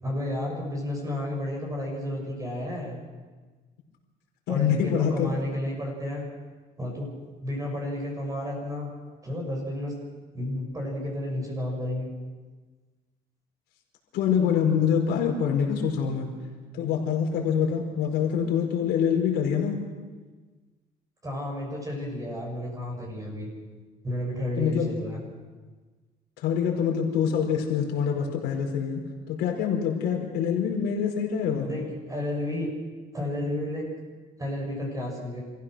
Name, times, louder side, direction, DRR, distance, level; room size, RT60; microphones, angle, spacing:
voice 1, 0.0-3.0 4.5-6.2 6.8-7.1 7.4-8.9 9.2-9.9 10.3-12.1 21.2-23.5 24.0-25.2 31.5-32.7 33.1-33.9 34.4-35.4, left 1 dB, 20° right, -1 dB, 6.6 m, -32 dB
voice 2, 4.5-5.3 14.1-16.3 16.7-19.8 24.6-24.9 26.4-31.7, left 7 dB, 80° left, 1 dB, 4.8 m, -25 dB
27.0 x 15.5 x 6.4 m, 1.4 s
cardioid pair, 110°, 17 cm